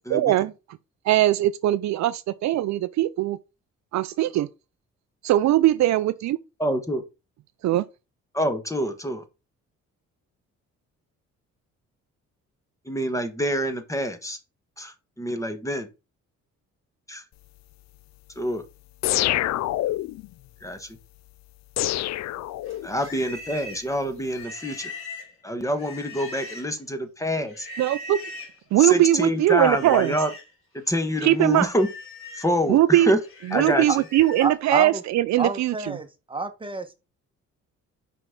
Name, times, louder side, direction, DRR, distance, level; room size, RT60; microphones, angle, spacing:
voice 1, 0.1-0.5 1.1-3.4 3.9-4.5 5.2-6.4 7.6-7.8 27.8-28.2 28.7-30.1 31.2-31.7 32.7-33.1 33.5-36.0, right 14 dB, 70° right, 0.5 m, -20 dB
voice 2, 6.6-7.0 8.3-9.2 12.9-14.4 14.8-15.9 17.1-17.2 18.4-18.6 20.6-20.9 22.8-24.9 25.4-27.7 28.8-30.3 30.7-31.9 32.3-33.2 33.5-33.8, equal, 10° left, 1.3 m, -26 dB
sound 1, 19.0-20.3 21.8-23.1, left 14 dB, 65° left, 0.4 m, -26 dB
Livestock farm animals working animals, 22.6-26.9 27.5-28.6 29.4-30.5 30.9-34.6, left 2 dB, 45° left, 3.5 m, -41 dB
voice 3, 34.4-35.0 35.4-36.9, right 3 dB, 15° right, 1.2 m, -29 dB
5.9 x 4.6 x 3.8 m
cardioid pair, 90°, 30 cm